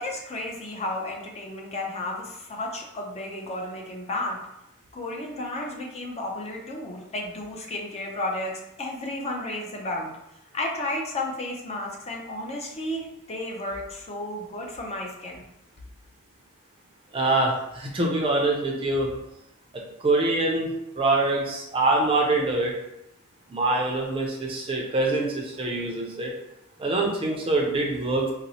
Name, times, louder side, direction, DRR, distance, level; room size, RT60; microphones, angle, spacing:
voice 1, 0.0-4.4 4.9-10.1 10.5-15.4, left 1 dB, 30° left, 0 dB, 0.5 m, -33 dB
voice 2, 17.1-19.1 20.0-22.7 23.5-26.3 26.8-28.3, right 2 dB, 25° right, 0 dB, 0.5 m, -24 dB
3.9 x 2.0 x 2.7 m, 0.85 s
head